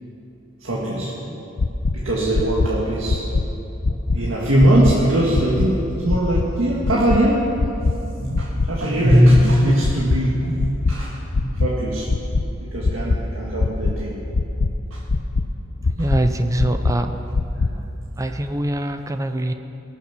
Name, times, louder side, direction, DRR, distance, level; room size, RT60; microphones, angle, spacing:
voice 1, 0.6-1.4 1.9-3.2 4.1-7.9 8.2-12.1 12.6-14.2 14.9-15.0 15.8-15.9 17.6-17.7, equal, 80° right, -6 dB, 1.9 m, -20 dB
sound 1, 1.6-1.9 2.3-2.7 3.1-3.4 3.8-4.2 4.6-4.9 5.3-5.7 6.1-6.4 6.8-7.2 7.6-7.9 8.3-8.7 9.1-9.4 9.8-10.2 10.6-10.9 11.3-11.7 12.1-12.4 12.8-13.2 13.6-13.9 14.3-14.7 15.1-15.4 15.8-16.2 16.6-16.9 17.3-17.7, left 3 dB, 70° left, 0.6 m, -20 dB
voice 2, 15.8-17.2 17.7-17.9 18.2-19.5, right 1 dB, 15° right, 8 dB, 0.5 m, -23 dB
21.5 x 7.3 x 6.0 m, 3.0 s
head